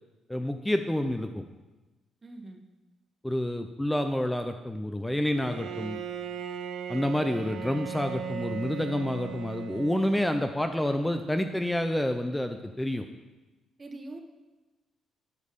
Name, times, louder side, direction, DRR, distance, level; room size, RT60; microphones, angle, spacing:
voice 1, 0.3-1.4 3.2-6.0 6.9-13.1, left 1 dB, 10° left, 7 dB, 0.5 m, -28 dB
voice 2, 2.2-2.6 13.8-14.2, right 2 dB, 30° right, 4 dB, 1.3 m, -42 dB
Bowed string instrument, 5.3-10.8, right 6 dB, 75° right, 0.6 m, -38 dB
10.5 x 5.3 x 5.2 m, 1.1 s
cardioid pair, 90°, 0 cm